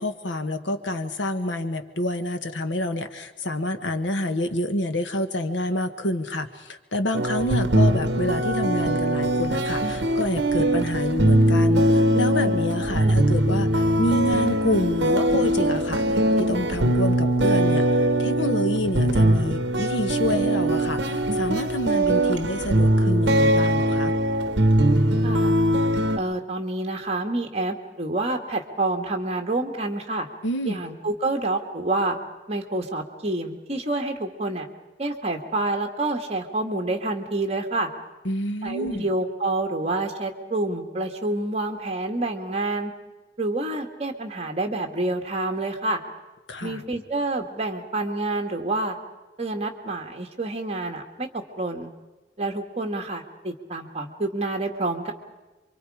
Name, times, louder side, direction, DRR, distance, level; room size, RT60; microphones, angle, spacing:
voice 1, 0.0-17.9 18.2-24.1 30.4-30.9 38.2-39.1 46.5-46.8, left 1 dB, 85° left, 9 dB, 1.4 m, -28 dB
sound 1, 7.1-26.2, right 1 dB, 65° right, 1.1 m, -21 dB
voice 2, 26.2-30.3 30.6-32.2 32.5-34.7 35.0-37.9 38.6-42.9 43.4-46.0 46.6-49.0 49.4-51.3 51.6-51.9 52.4-55.1, right 2 dB, 35° right, 4 dB, 1.9 m, -28 dB
27.5 x 24.5 x 5.0 m, 1.1 s
head